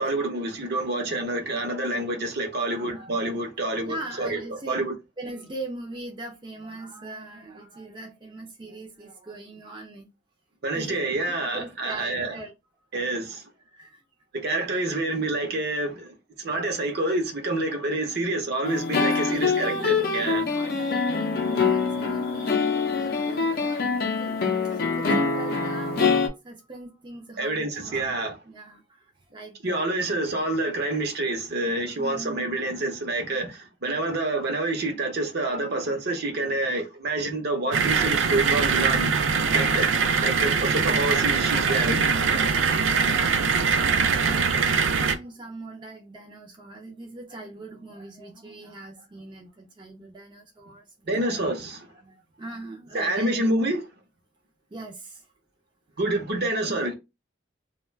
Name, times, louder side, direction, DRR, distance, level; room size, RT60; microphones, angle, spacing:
voice 1, 0.0-4.4 4.7-4.9 10.6-12.4 12.9-13.4 14.4-20.4 27.4-28.3 29.6-39.1 39.5-39.9 40.2-42.5 51.1-51.9 52.9-53.8 56.0-56.9, right 2 dB, 60° right, 0.7 m, -27 dB
voice 2, 1.0-1.7 2.6-3.4 3.9-4.8 5.2-10.1 10.7-12.5 13.7-14.0 14.5-14.6 19.0-26.1 26.4-28.2 28.4-28.8 29.3-29.9 32.0-32.6 42.6-51.2 52.0-53.5 54.7-55.2 56.6-56.8, right 2 dB, 25° right, 0.5 m, -41 dB
sound 1, 18.6-26.3, left 4 dB, 50° left, 0.5 m, -25 dB
sound 2, 37.7-45.2, right 5 dB, 85° right, 0.4 m, -22 dB
2.3 x 2.2 x 3.2 m
head